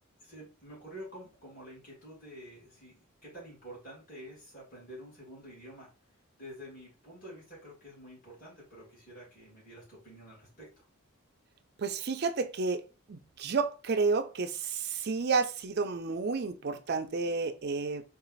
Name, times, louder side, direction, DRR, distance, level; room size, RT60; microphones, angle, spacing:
voice 1, 0.2-5.9 6.4-10.9, equal, 40° left, 2.4 m, -49 dB
voice 2, 11.8-12.8 13.1-18.0, right 4 dB, 50° right, 0.5 m, -31 dB
4.0 x 2.4 x 3.9 m
head